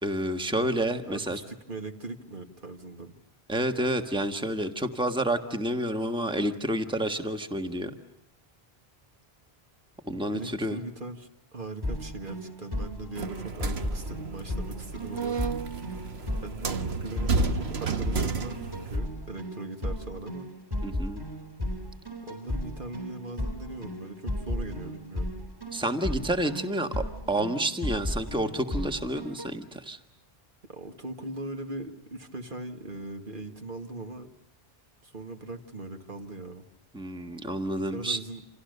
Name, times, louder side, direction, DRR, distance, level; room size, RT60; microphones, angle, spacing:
voice 1, 0.0-1.4 3.5-7.9 10.0-10.8 20.8-21.2 25.7-30.0 36.9-38.2, right 1 dB, 5° right, 6 dB, 1.5 m, -29 dB
voice 2, 1.0-3.2 10.3-15.4 16.4-20.5 22.3-25.3 30.7-34.3 35.0-36.6 37.9-38.4, right 2 dB, 55° right, 5 dB, 2.2 m, -40 dB
sound 1, 11.8-29.5, left 1 dB, 20° right, 4.0 m, -34 dB
sound 2, 13.2-19.0, right 4 dB, 85° right, 1.6 m, -32 dB
29.0 x 27.5 x 6.8 m, 0.80 s
omnidirectional pair, 1.0 m